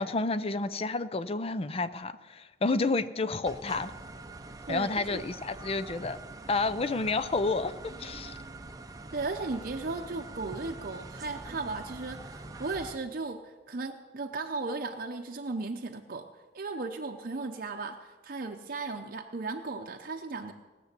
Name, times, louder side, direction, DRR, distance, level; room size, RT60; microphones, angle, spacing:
voice 1, 0.0-3.9 4.7-6.2 6.5-7.7 8.0-8.4, left 3 dB, 35° left, 13 dB, 0.5 m, -30 dB
sound 1, 3.5-13.0, right 2 dB, 20° right, 0.7 m, -44 dB
voice 2, 4.7-5.2 9.1-16.3 16.5-20.5, right 3 dB, 50° right, 4 dB, 0.7 m, -36 dB
18.5 x 7.0 x 8.2 m, 1.3 s
head